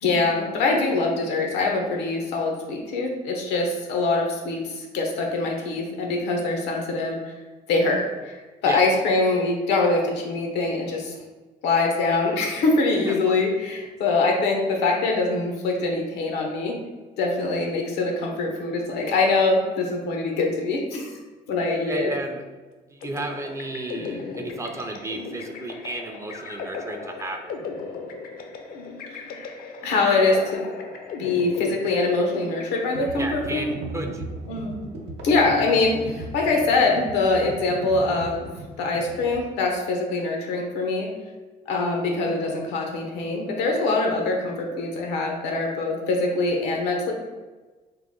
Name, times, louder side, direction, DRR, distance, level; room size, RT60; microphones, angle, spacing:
voice 1, 0.0-7.3 7.7-11.1 11.6-16.8 17.2-21.2 21.5-22.1 29.1-29.5 29.8-30.6 31.2-33.7 34.5-34.7 35.2-38.5 38.8-41.1 41.7-47.1, left 3 dB, 85° left, 1 dB, 0.8 m, -23 dB
voice 2, 13.0-13.4 21.9-22.4 22.9-27.5 33.1-34.3, right 2 dB, 15° right, 4 dB, 0.4 m, -33 dB
sound 1, 23.0-33.4, left 4 dB, 60° left, 0.5 m, -37 dB
sound 2, 32.9-39.4, right 2 dB, 85° right, 0.7 m, -37 dB
3.7 x 2.2 x 3.6 m, 1.3 s
cardioid pair, 110°, 17 cm